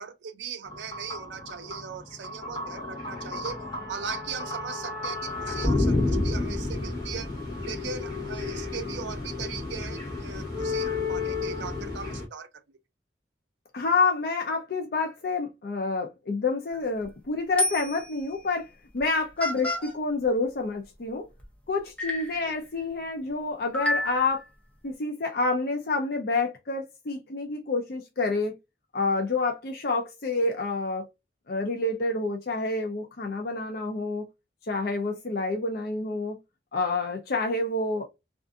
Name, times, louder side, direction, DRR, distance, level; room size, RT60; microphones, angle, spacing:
voice 1, 0.0-7.4 7.6-12.6 22.4-22.5, right 6 dB, 75° right, 0.4 m, -39 dB
sound 1, 0.7-12.3, left 2 dB, 25° left, 0.9 m, -31 dB
voice 2, 13.7-18.7 18.9-21.3 21.7-24.4 24.8-28.6 28.9-31.1 31.5-34.3 34.7-36.4 36.7-38.0, left 3 dB, 55° left, 0.5 m, -28 dB
sound 2, 16.7-17.0 17.6-18.2 19.0-19.1 19.4-19.9 21.4-21.5 22.0-22.4 23.7-24.4, left 1 dB, 5° left, 0.5 m, -29 dB
2.5 x 2.4 x 2.4 m
head